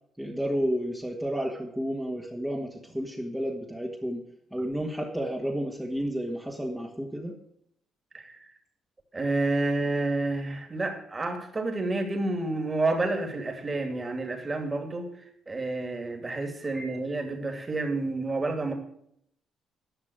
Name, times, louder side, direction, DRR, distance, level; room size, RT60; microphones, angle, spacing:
voice 1, 0.2-4.2 4.5-7.3 16.7-16.8, equal, 5° right, -2 dB, 1.6 m, -31 dB
voice 2, 8.1-8.5 9.1-15.1 15.5-18.7, right 2 dB, 25° right, 4 dB, 2.6 m, -29 dB
11.5 x 5.9 x 8.0 m, 0.71 s
cardioid pair, 90°, 0 cm